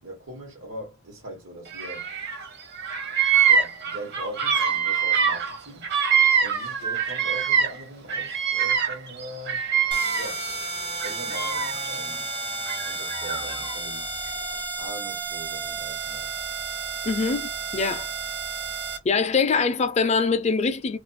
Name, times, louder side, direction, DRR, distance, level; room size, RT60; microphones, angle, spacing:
voice 1, 0.0-2.1 3.5-5.9 6.4-9.6 10.1-10.4 11.0-12.3 12.8-14.1 14.7-16.3, right 1 dB, 85° right, 1.1 m, -40 dB
Bird vocalization bird call bird song, 1.7-2.5 2.7-7.8 8.1-10.5 11.0-11.9 12.7-13.7, right 7 dB, 55° right, 0.7 m, -24 dB
sound 1, 9.9-19.0, right 4 dB, 25° right, 0.5 m, -32 dB
voice 2, 17.0-18.1 19.0-21.0, left 4 dB, 35° left, 0.4 m, -23 dB
2.4 x 2.2 x 2.5 m
head